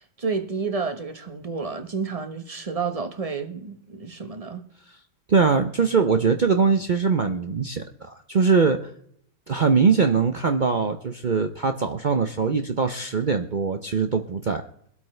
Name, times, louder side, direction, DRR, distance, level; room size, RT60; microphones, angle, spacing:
voice 1, 0.0-4.7, right 5 dB, 25° right, 0.9 m, -30 dB
voice 2, 5.3-8.9 9.5-14.6, right 5 dB, 70° right, 0.4 m, -22 dB
23.5 x 8.4 x 3.2 m
omnidirectional pair, 1.8 m